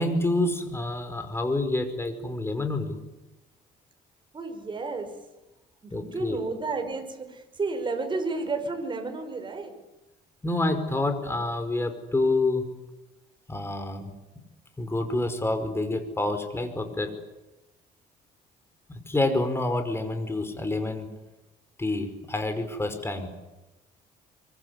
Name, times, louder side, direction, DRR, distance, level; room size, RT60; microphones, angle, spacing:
voice 1, 0.0-3.0 5.9-6.4 10.4-12.6 13.5-14.1 14.8-17.1 18.9-21.1 21.8-23.3, left 2 dB, 15° left, 8 dB, 5.1 m, -28 dB
voice 2, 4.3-5.1 5.8-9.7, right 3 dB, 30° right, 6 dB, 5.6 m, -32 dB
24.5 x 24.0 x 9.8 m, 1.0 s
cardioid pair, 110°, 17 cm